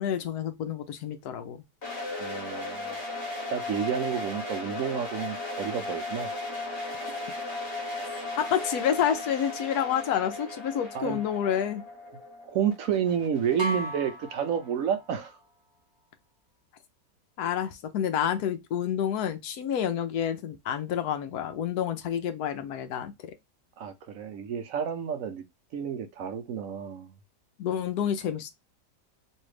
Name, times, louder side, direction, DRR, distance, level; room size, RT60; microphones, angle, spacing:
voice 1, 0.0-1.6 8.4-11.8 17.4-23.1 27.6-28.5, left 9 dB, 70° left, 1.1 m, -29 dB
sound 1, 1.8-14.7, left 2 dB, 40° left, 1.6 m, -36 dB
voice 2, 2.2-3.0 3.5-6.3 10.9-11.2 12.4-15.4 23.8-25.4 25.7-27.1, right 8 dB, 70° right, 0.8 m, -30 dB
sound 2, 13.6-15.4, equal, 30° right, 0.5 m, -35 dB
3.2 x 2.7 x 3.1 m
omnidirectional pair, 1.8 m